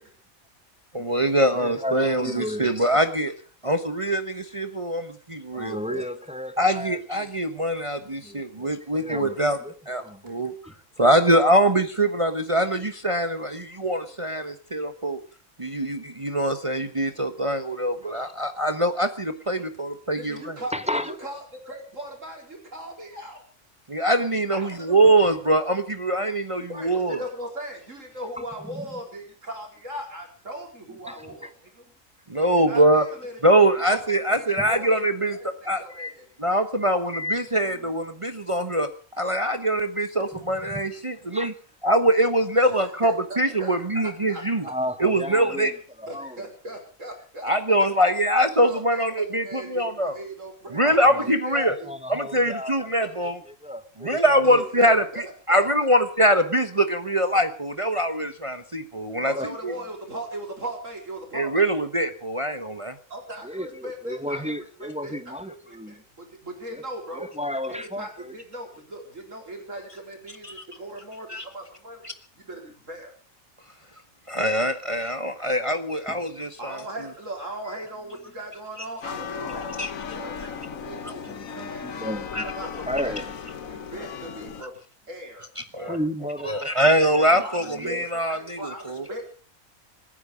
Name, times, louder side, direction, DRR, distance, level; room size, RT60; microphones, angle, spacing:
voice 1, 0.9-3.3 3.6-6.0 6.6-9.6 9.9-10.5 11.0-15.2 15.6-20.5 23.9-27.2 32.3-33.0 33.4-35.4 35.7-35.8 36.4-38.9 39.2-41.5 41.8-44.7 45.0-45.7 47.4-50.1 50.7-51.8 52.1-53.4 54.0-59.7 61.3-62.9 70.4-70.6 71.3-71.4 72.0-72.1 74.3-76.8 79.8-79.9 81.0-81.1 82.3-82.4 85.6-86.0 86.4-89.0, right 1 dB, 25° right, 1.2 m, -23 dB
voice 2, 1.5-3.0 5.5-7.3 8.1-9.7 10.0-10.2 10.6-10.7 20.7-21.1 28.4-29.0 31.1-31.2 31.4-31.5 34.6-34.7 35.9-36.1 37.1-37.4 40.7-40.8 41.3-41.5 44.6-46.4 50.7-54.7 59.3-59.5 63.4-66.0 66.7-66.8 67.1-68.3 76.1-76.2 77.7-77.8 81.2-83.3 85.9-86.7 87.0-87.5 87.7-88.1, left 1 dB, 5° right, 1.1 m, -34 dB
voice 3, 20.1-20.8 21.0-23.4 24.5-25.2 26.7-31.8 32.6-33.6 33.9-34.0 34.3-36.2 41.1-41.2 42.6-42.8 43.0-44.7 46.1-48.1 48.6-51.9 54.4-55.2 55.5-55.9 59.3-61.7 63.1-64.5 64.8-67.3 67.7-72.1 72.4-73.1 76.6-81.3 81.6-82.1 82.6-83.1 83.6-84.7 85.1-85.5 85.7-86.0 87.4-89.3, right 1 dB, 70° right, 4.8 m, -39 dB
sound 1, 79.0-84.6, left 6 dB, 85° left, 1.6 m, -36 dB
27.5 x 10.5 x 5.1 m
omnidirectional pair, 1.4 m